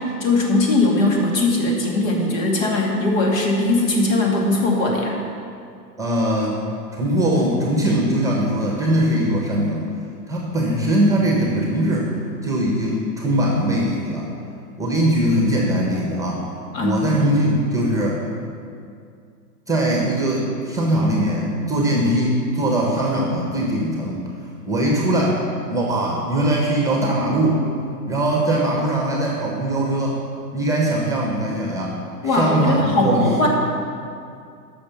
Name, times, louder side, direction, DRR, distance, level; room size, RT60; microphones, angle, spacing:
voice 1, 0.0-5.2 16.7-17.0 32.2-33.5, left 2 dB, 50° left, -1 dB, 2.5 m, -20 dB
voice 2, 6.0-6.6 6.9-9.9 10.3-12.1 12.4-14.3 14.8-16.5 16.8-18.2 19.7-24.2 24.7-27.6 28.1-30.2 30.5-32.0 32.2-33.5, right 1 dB, 5° right, -2 dB, 1.2 m, -21 dB
10.0 x 6.4 x 7.0 m, 2.4 s
hypercardioid pair, 115°, 49 cm